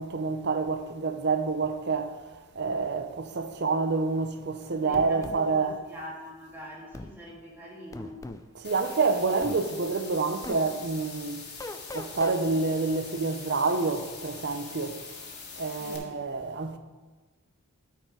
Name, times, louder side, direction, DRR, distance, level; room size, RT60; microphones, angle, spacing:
voice 1, 0.0-2.2 2.6-5.8 8.6-11.5 11.9-15.0 15.6-16.8, right 4 dB, 50° right, 0.6 m, -28 dB
voice 2, 4.8-8.2 15.8-16.2, equal, 10° right, 1.9 m, -44 dB
sound 1, 4.9-5.4 6.9-7.1 7.9-8.4 9.4-9.6 10.4-10.6 11.6-12.4, left 2 dB, 15° left, 0.3 m, -39 dB
sound 2, 8.6-16.0, left 4 dB, 50° left, 1.8 m, -43 dB
12.5 x 4.5 x 4.7 m
head